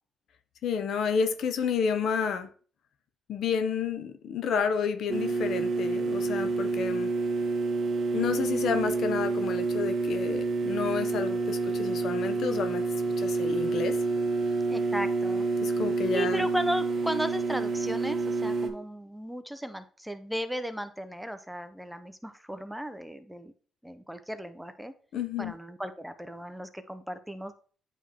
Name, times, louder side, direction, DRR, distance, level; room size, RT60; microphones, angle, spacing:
voice 1, 0.6-2.5 3.3-7.1 8.1-12.9 13.2-14.0 15.6-16.5 25.1-25.5, left 6 dB, 70° left, 0.7 m, -30 dB
sound 1, 5.1-18.7, right 3 dB, 50° right, 1.0 m, -28 dB
voice 2, 14.7-15.5 16.1-23.5 23.8-24.9 25.4-27.5, equal, 5° right, 0.6 m, -35 dB
9.2 x 3.5 x 2.9 m
cardioid pair, 90°, 0 cm